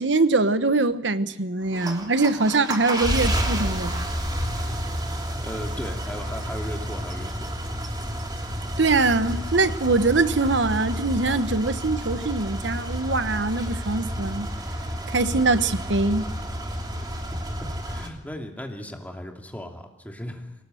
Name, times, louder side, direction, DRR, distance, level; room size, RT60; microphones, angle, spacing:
voice 1, 0.0-4.1 8.8-14.5 15.1-16.3, right 3 dB, 90° right, 1.1 m, -23 dB
sound 1, 1.6-18.1, equal, 25° right, 3.0 m, -30 dB
voice 2, 5.4-7.5 17.8-20.5, equal, 10° left, 2.7 m, -36 dB
23.0 x 19.0 x 7.8 m
head